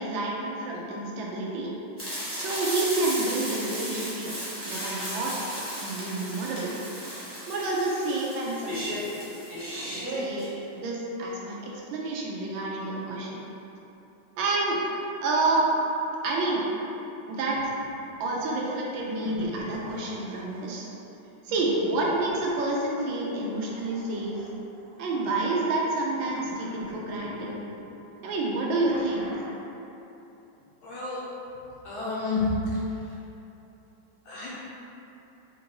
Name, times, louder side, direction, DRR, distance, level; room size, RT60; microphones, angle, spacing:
voice 1, 0.0-1.7 2.3-4.3 4.7-5.4 5.8-6.7 7.5-9.1 9.7-13.4 14.4-14.8 15.2-15.7 16.2-16.7 17.3-17.7 18.2-20.8 21.4-24.5 25.0-27.6 28.2-29.3, right 2 dB, 80° right, -3 dB, 1.3 m, -29 dB
sound 1, 2.0-10.5, equal, 10° right, 0.7 m, -35 dB
sound 2, 17.5-18.6 19.2-20.9 21.5-25.2 26.2-28.0 28.8-29.7, equal, 60° right, 0.4 m, -43 dB
voice 2, 30.8-31.3 31.8-32.5 33.1-33.2 34.3-34.5, left 4 dB, 70° left, -8 dB, 1.0 m, -30 dB
4.4 x 2.7 x 2.8 m, 3.0 s
omnidirectional pair, 2.1 m